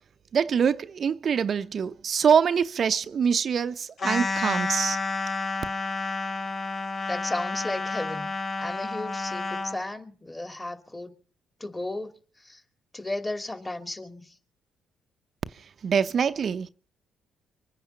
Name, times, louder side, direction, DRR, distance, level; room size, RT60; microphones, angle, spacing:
voice 1, 0.3-5.0 15.8-16.7, right 7 dB, 55° right, 0.7 m, -24 dB
sound 1, 4.0-9.8, left 3 dB, 60° left, 2.8 m, -30 dB
voice 2, 7.1-8.3 8.6-11.1 11.6-12.1 12.4-12.6 12.9-14.4, left 2 dB, 20° left, 2.7 m, -34 dB
24.5 x 10.0 x 5.6 m
hypercardioid pair, 55°, 0 cm